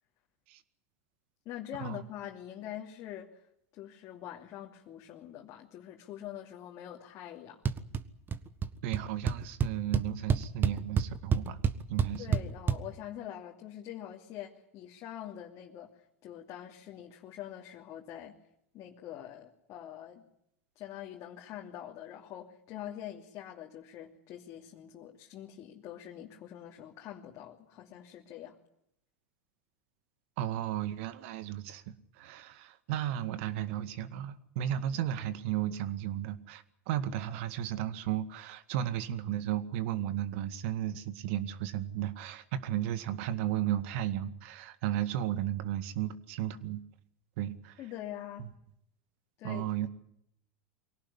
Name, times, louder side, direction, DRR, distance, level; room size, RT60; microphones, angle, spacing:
voice 1, 1.4-3.4 3.7-7.6 12.2-15.9 16.2-18.4 18.7-20.3 20.8-28.6 47.8-48.5 49.4-49.6, left 11 dB, 45° left, 0 dB, 2.8 m, -44 dB
sound 1, 7.7-8.0 8.3-8.7 8.9-9.0 9.3-12.8, right 7 dB, 30° right, 1.5 m, -28 dB
voice 2, 8.8-11.6 11.9-12.4 30.4-46.8 47.4-47.8 48.4-48.5 49.4-49.9, right 11 dB, 60° right, 13 dB, 2.0 m, -34 dB
24.0 x 18.0 x 9.9 m, 0.76 s
hypercardioid pair, 95°, 7 cm